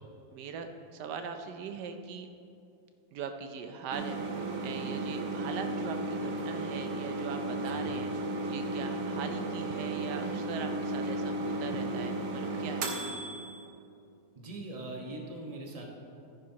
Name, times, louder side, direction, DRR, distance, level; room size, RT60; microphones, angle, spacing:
voice 1, 0.3-2.3 3.1-12.9, right 6 dB, 85° right, 7 dB, 1.2 m, -41 dB
sound 1, 3.9-13.7, right 2 dB, 65° right, 1.5 m, -34 dB
voice 2, 14.3-15.8, right 2 dB, 25° right, -1 dB, 1.3 m, -41 dB
14.5 x 10.0 x 2.9 m, 2.6 s
omnidirectional pair, 1.8 m